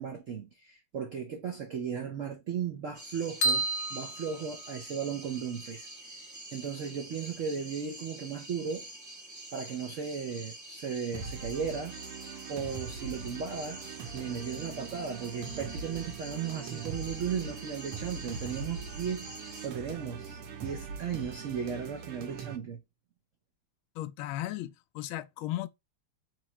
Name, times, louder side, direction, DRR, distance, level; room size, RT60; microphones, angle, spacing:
voice 1, 0.0-5.9 6.5-8.9 9.5-11.9 12.5-13.9 14.1-19.3 19.6-22.8, right 7 dB, 75° right, 0.7 m, -36 dB
sound 1, 2.9-19.7, right 1 dB, 15° right, 0.6 m, -47 dB
sound 2, 3.4-5.2, right 2 dB, 60° left, 0.5 m, -31 dB
sound 3, 11.1-22.6, right 5 dB, 90° right, 1.7 m, -41 dB
voice 2, 23.9-25.7, left 14 dB, 75° left, 1.3 m, -36 dB
3.7 x 3.1 x 4.1 m
omnidirectional pair, 2.4 m